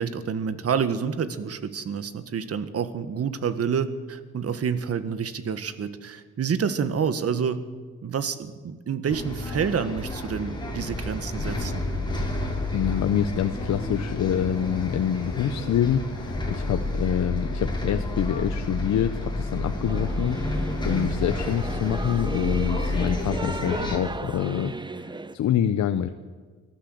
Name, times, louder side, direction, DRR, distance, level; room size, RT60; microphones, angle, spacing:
voice 1, 0.0-7.6 8.0-11.9, right 7 dB, 50° right, 11 dB, 1.8 m, -28 dB
Bus, 9.1-24.0, left 1 dB, 15° left, 6.6 m, -30 dB
voice 2, 12.7-26.1, left 9 dB, 65° left, 8 dB, 1.1 m, -26 dB
Singing / Musical instrument, 19.9-25.4, right 3 dB, 15° right, 0.9 m, -36 dB
24.5 x 15.0 x 8.1 m, 1.5 s
cardioid pair, 90°, 30 cm